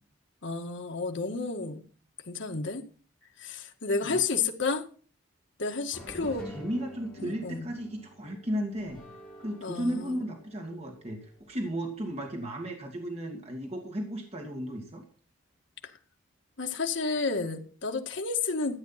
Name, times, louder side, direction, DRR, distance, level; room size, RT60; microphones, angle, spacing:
voice 1, 0.4-1.8 2.3-2.8 3.4-4.8 5.6-6.5 7.2-7.6 9.6-10.2 16.6-18.8, left 4 dB, 65° left, 3 dB, 1.8 m, -31 dB
sound 1, 5.9-12.1, equal, 5° left, 5.0 m, -49 dB
voice 2, 6.1-9.0 9.4-15.0, equal, 30° right, 1 dB, 2.4 m, -35 dB
14.0 x 9.2 x 5.9 m, 0.41 s
head